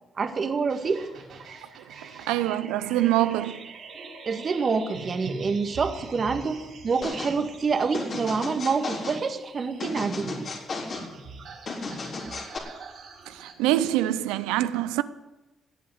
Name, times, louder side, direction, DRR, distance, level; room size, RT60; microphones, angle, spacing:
voice 1, 0.2-1.0 4.2-10.5, right 5 dB, 50° right, 1.8 m, -27 dB
sound 1, 0.7-13.5, right 3 dB, 70° right, 4.9 m, -43 dB
voice 2, 2.3-3.6 13.3-15.0, right 14 dB, 90° right, 0.5 m, -24 dB
sound 2, 7.0-7.4 7.9-9.2 9.8-11.1 11.7-12.6, left 3 dB, 55° left, 3.8 m, -34 dB
18.0 x 8.5 x 7.9 m
supercardioid pair, 55°, 0 cm